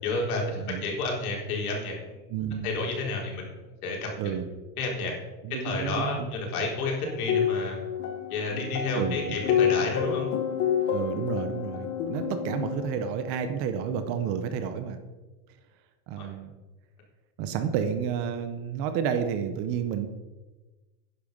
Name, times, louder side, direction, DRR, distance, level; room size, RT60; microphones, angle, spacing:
voice 1, 0.0-2.2 2.6-3.5 3.8-4.1 4.8-5.1 5.6-7.8 8.3-10.3 16.2-16.3, left 3 dB, 75° left, -1 dB, 4.2 m, -30 dB
voice 2, 2.3-2.7 4.2-4.5 5.4-6.3 8.9-9.4 10.9-15.0 16.1-16.5 17.4-20.1, right 8 dB, 30° right, 8 dB, 0.8 m, -30 dB
sound 1, 7.1-13.0, left 8 dB, 30° left, 1.2 m, -28 dB
11.0 x 10.0 x 5.4 m, 1.2 s
supercardioid pair, 175°, 44 cm